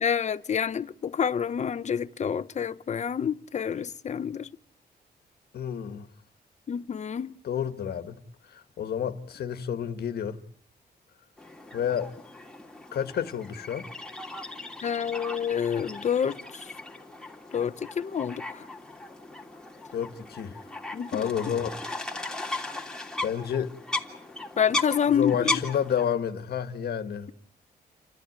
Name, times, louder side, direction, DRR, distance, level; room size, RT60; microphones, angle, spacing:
voice 1, 0.0-4.5 6.7-7.3 14.8-16.7 17.5-18.6 20.9-21.3 24.6-25.6, left 8 dB, 45° left, 0.9 m, -28 dB
voice 2, 5.5-6.1 7.4-8.2 8.5-10.4 11.7-12.1 12.9-13.9 19.9-20.6 21.1-21.8 22.2-22.4 23.2-23.7 25.1-27.3, left 8 dB, 75° left, 1.6 m, -30 dB
sound 1, 11.4-26.1, left 2 dB, 5° left, 2.9 m, -37 dB
29.5 x 13.5 x 9.6 m
cardioid pair, 120°, 17 cm